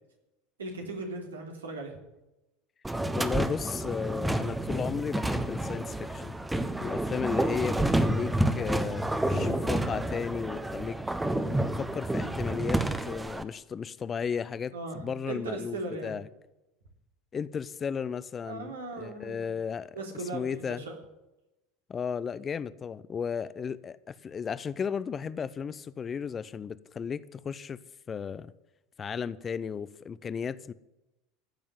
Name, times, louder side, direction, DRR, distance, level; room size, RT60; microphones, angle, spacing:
voice 1, 0.6-2.0 9.3-9.6 14.7-16.1 18.5-19.4 19.9-21.0, right 2 dB, 85° right, 3.4 m, -38 dB
sound 1, 2.8-13.4, right 1 dB, 10° right, 1.2 m, -29 dB
voice 2, 3.1-6.4 6.8-11.0 11.8-16.3 17.3-20.0 20.3-20.8 21.9-27.8 28.1-28.5 29.0-30.7, left 6 dB, 30° left, 0.7 m, -34 dB
15.5 x 7.1 x 9.6 m
hypercardioid pair, 80°, 0 cm